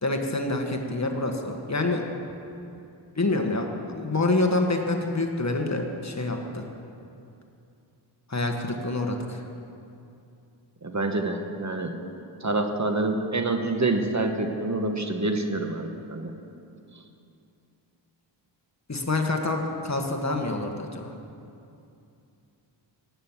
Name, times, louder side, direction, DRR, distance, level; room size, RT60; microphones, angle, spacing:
voice 1, 0.0-2.0 3.2-3.7 3.9-6.7 8.3-9.4 18.9-21.1, left 2 dB, 35° left, 3 dB, 1.6 m, -27 dB
voice 2, 10.8-11.9 12.4-16.3, right 2 dB, 35° right, 4 dB, 1.4 m, -27 dB
18.0 x 8.9 x 7.4 m, 2.6 s
wide cardioid pair, 65°, 46 cm